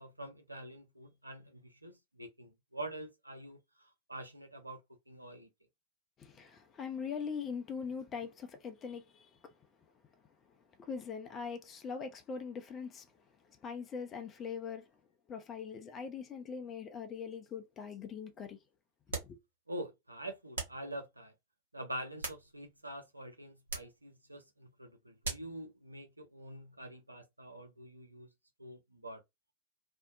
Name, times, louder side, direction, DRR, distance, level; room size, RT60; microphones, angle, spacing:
voice 1, 0.0-4.8 5.1-5.5 19.7-21.3 21.7-28.3 28.6-29.2, right 1 dB, 85° right, 0.6 m, -46 dB
voice 2, 6.2-9.5 10.8-13.1 13.5-14.9 15.3-18.6 19.2-19.4, left 6 dB, 25° left, 0.6 m, -42 dB
sound 1, 19.1-19.4 20.5-20.9 21.9-22.8 23.7-24.0 25.2-25.6, right 3 dB, 70° right, 1.0 m, -41 dB
2.6 x 2.1 x 2.5 m
figure-of-eight pair, 90°, 0 cm